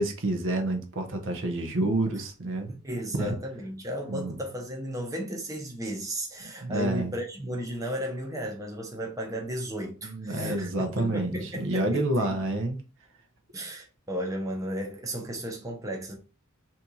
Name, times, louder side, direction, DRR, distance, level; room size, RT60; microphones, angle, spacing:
voice 1, 0.0-2.7 3.1-3.4 4.1-4.4 6.6-7.1 10.0-12.8, right 1 dB, 60° right, 0.8 m, -28 dB
voice 2, 2.7-12.3 13.5-16.1, equal, 15° right, 0.7 m, -34 dB
4.2 x 2.7 x 2.3 m
head